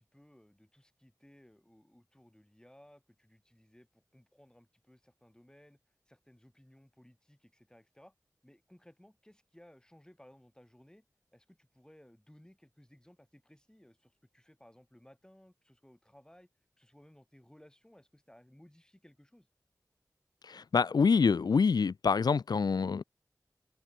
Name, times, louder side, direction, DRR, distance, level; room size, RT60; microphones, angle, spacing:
voice 1, 0.0-8.1 8.4-11.1 11.3-16.5 16.8-19.5, left 1 dB, 10° left, 7.2 m, -60 dB
voice 2, 20.4-23.0, left 5 dB, 80° left, 0.4 m, -26 dB
open air
wide cardioid pair, 60°, 7 cm